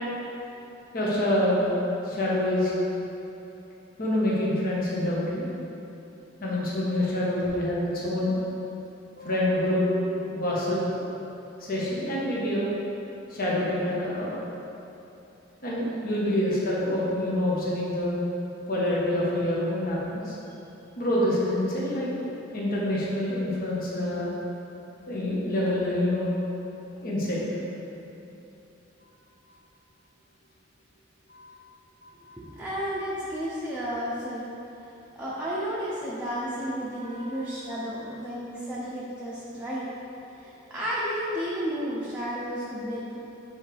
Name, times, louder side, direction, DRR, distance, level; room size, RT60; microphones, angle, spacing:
voice 1, 0.9-1.7 2.0-2.7 4.0-5.5 6.4-8.4 9.2-11.0 11.6-12.7 13.3-14.4 15.6-18.1 18.7-20.3 21.0-22.1 22.5-24.3 25.1-26.3 27.0-27.5 31.3-31.5 32.0-32.3 36.9-37.3, left 1 dB, 50° left, -6 dB, 1.4 m, -26 dB
voice 2, 32.4-34.4 34.8-34.9 35.1-39.9 40.3-43.2, equal, 10° right, -9 dB, 0.8 m, -32 dB
8.3 x 4.6 x 3.4 m, 2.9 s
head